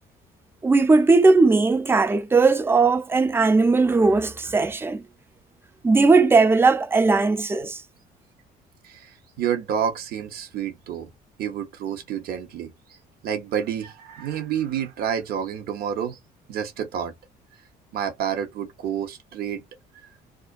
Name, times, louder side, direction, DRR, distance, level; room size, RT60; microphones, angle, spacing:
voice 1, 0.6-5.0 5.8-7.8, right 3 dB, 15° right, 0.3 m, -18 dB
voice 2, 9.4-11.1 11.4-12.7 13.2-16.2 16.5-17.1 17.9-19.6, right 9 dB, 65° right, 0.7 m, -29 dB
2.4 x 2.2 x 2.4 m
cardioid pair, 110°, 17 cm